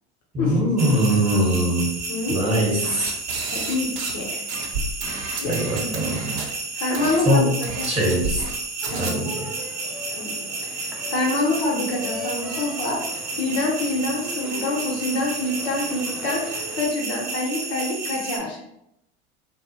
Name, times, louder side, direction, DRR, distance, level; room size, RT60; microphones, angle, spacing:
voice 1, 0.3-2.0 2.3-3.1 5.4-6.2 7.3-7.5 7.8-8.5 9.0-9.5, equal, 20° right, -2 dB, 1.1 m, -22 dB
sound 1, 0.8-18.4, right 3 dB, 90° right, 0.8 m, -32 dB
sound 2, 2.8-4.2 4.5-6.5 6.9-7.2 7.6-8.6 8.8-9.1, right 4 dB, 50° right, 0.7 m, -31 dB
voice 2, 3.5-4.4 5.4-6.1 6.7-7.9 8.9-9.3 10.1-18.6, left 2 dB, 45° left, -2 dB, 0.8 m, -27 dB
sound 3, 8.8-16.9, equal, ahead, 0.4 m, -39 dB
2.5 x 2.0 x 2.8 m, 0.80 s
hypercardioid pair, 75°, 34 cm